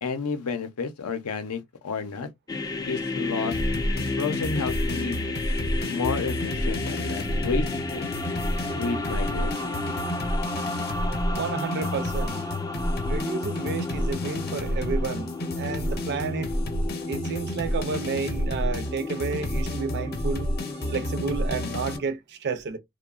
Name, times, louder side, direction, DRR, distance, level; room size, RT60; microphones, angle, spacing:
voice 1, 0.0-2.3 2.9-3.6 4.2-5.2 5.7-8.1 8.7-9.8, left 4 dB, 80° left, 0.6 m, -31 dB
sound 1, 2.5-22.0, left 2 dB, 15° left, 0.3 m, -32 dB
sound 2, 3.5-22.0, equal, 45° left, 0.7 m, -30 dB
sound 3, 4.6-9.7, left 1 dB, 90° right, 0.8 m, -48 dB
voice 2, 11.3-12.4 13.1-16.5 17.1-20.5 20.8-22.8, right 5 dB, 50° right, 0.4 m, -31 dB
2.9 x 2.2 x 2.3 m
head